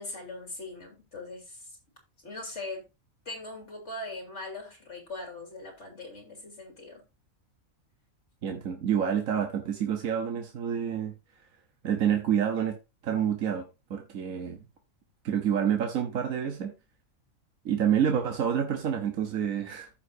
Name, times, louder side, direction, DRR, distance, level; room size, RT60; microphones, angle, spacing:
voice 1, 0.0-1.8 2.2-2.8 3.3-7.0, left 2 dB, 55° left, 3.6 m, -40 dB
voice 2, 8.4-11.1 11.8-12.8 13.0-13.6 13.9-14.6 15.2-16.7 17.6-19.9, right 8 dB, 70° right, 1.5 m, -28 dB
14.0 x 5.7 x 2.7 m
omnidirectional pair, 1.5 m